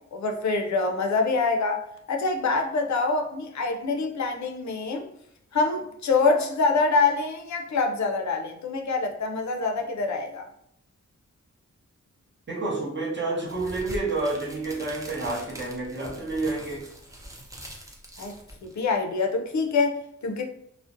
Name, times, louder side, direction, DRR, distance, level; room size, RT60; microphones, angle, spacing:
voice 1, 0.1-5.0 5.5-10.5 18.2-18.3 18.6-20.4, left 4 dB, 70° left, 3 dB, 0.4 m, -25 dB
voice 2, 12.5-16.9, right 2 dB, 40° right, -3 dB, 0.8 m, -29 dB
sound 1, 13.5-19.0, right 1 dB, 10° right, 0.5 m, -43 dB
2.5 x 2.0 x 2.5 m, 0.73 s
wide cardioid pair, 80°, 30 cm